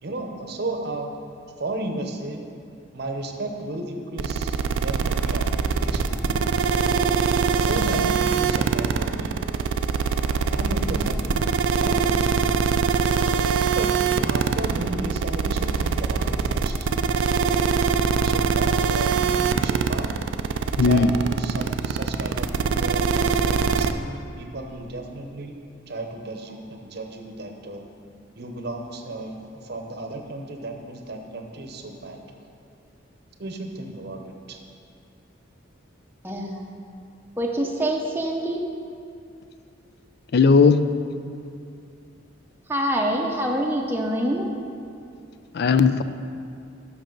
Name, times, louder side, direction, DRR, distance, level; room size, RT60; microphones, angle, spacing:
voice 1, 0.0-1.1 1.6-2.4 2.9-6.4 7.6-9.3 10.5-11.4 11.7-12.2 13.5-13.9 14.2-16.9 18.2-20.1 20.8-25.5 25.9-27.8 28.4-32.2 33.4-34.6, right 2 dB, 55° right, 3 dB, 0.8 m, -34 dB
sound 1, 4.2-23.9, right 6 dB, 75° right, 0.4 m, -22 dB
voice 2, 20.8-21.1 40.3-40.9 45.5-46.0, left 5 dB, 55° left, 11 dB, 0.4 m, -17 dB
voice 3, 36.2-36.7 37.4-38.6 42.7-44.5, right 1 dB, 10° right, -1 dB, 0.6 m, -25 dB
10.5 x 6.1 x 3.9 m, 2.4 s
head